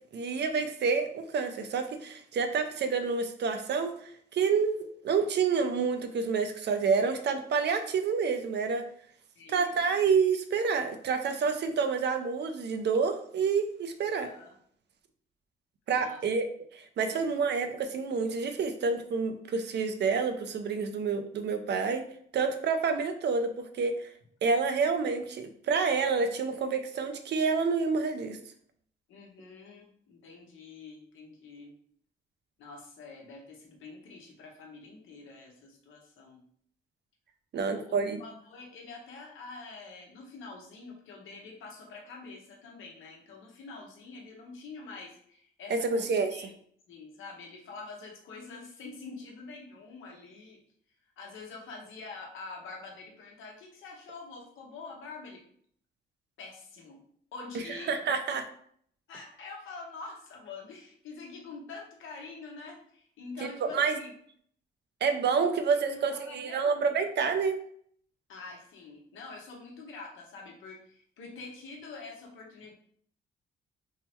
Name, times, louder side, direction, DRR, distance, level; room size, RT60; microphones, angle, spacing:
voice 1, 0.1-3.9 4.3-8.9 9.5-14.3 15.9-16.5 16.7-22.0 22.3-24.1 24.4-28.4 37.5-38.2 45.7-46.3 57.9-58.4 63.4-63.5 63.7-64.0 65.0-67.6, right 5 dB, 60° right, 7 dB, 0.6 m, -28 dB
voice 2, 9.4-10.0 14.2-14.5 15.9-16.2 17.1-17.5 29.1-31.7 32.6-36.4 37.5-46.5 46.9-50.6 51.2-55.4 56.4-57.0 57.3-58.0 59.1-64.1 65.4-65.6 65.9-67.1 68.3-72.7, left 3 dB, 80° left, 0 dB, 1.1 m, -46 dB
3.6 x 2.1 x 4.3 m, 0.62 s
cardioid pair, 90°, 20 cm